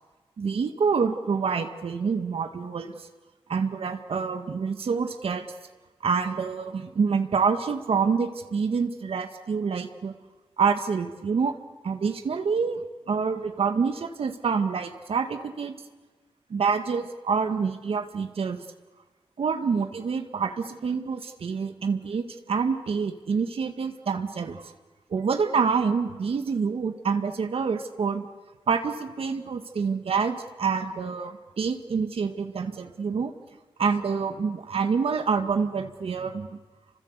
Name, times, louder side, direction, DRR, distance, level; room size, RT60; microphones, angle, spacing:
voice 1, 0.4-3.1 3.5-5.5 6.0-10.1 10.6-11.5 11.8-12.8 13.1-15.8 16.5-18.6 19.4-24.7 25.1-28.2 28.7-33.3 33.8-36.6, right 5 dB, 75° right, 7 dB, 1.9 m, -27 dB
29.0 x 25.0 x 8.3 m, 1.3 s
cardioid pair, 75°, 10 cm